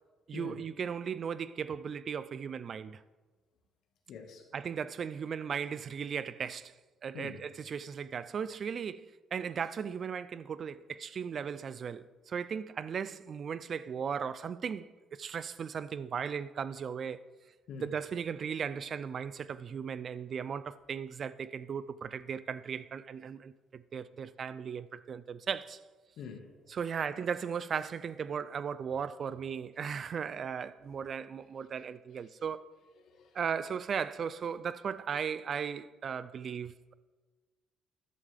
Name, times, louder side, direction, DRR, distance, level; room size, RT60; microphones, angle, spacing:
voice 1, 0.3-3.0 4.5-6.7 7.0-17.3 17.8-25.8 26.7-32.7 33.3-36.9, right 7 dB, 35° right, 0.3 m, -37 dB
voice 2, 4.1-4.5 7.1-7.4 17.7-17.9 26.2-26.5 30.9-31.0 33.0-33.4, left 6 dB, 55° left, 1.6 m, -45 dB
14.0 x 11.0 x 3.4 m
cardioid pair, 170°, 0 cm